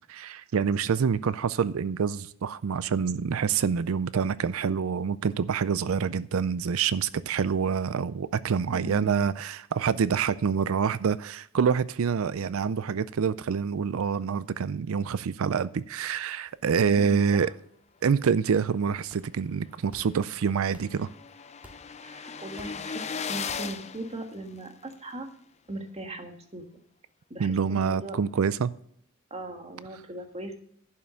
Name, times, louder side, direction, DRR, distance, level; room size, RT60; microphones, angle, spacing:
voice 1, 0.1-17.5 18.0-21.1 27.4-28.7, right 6 dB, 75° right, 0.4 m, -26 dB
voice 2, 8.7-9.2 16.9-17.5 22.0-25.3 25.7-26.7 27.3-28.2 29.3-30.6, right 1 dB, 30° right, 1.5 m, -39 dB
sound 1, 14.3-14.6 14.9-15.0 15.2-15.8 16.1-16.3 16.9-17.5 17.8-18.5 19.1-19.5 19.9-20.4 20.7-21.2 21.6-22.1 22.6-23.0 23.5-23.9, equal, 10° right, 1.9 m, -55 dB
sound 2, 19.4-19.5 19.8-19.9 20.1-24.9, left 6 dB, 30° left, 0.5 m, -38 dB
11.0 x 5.7 x 6.4 m
head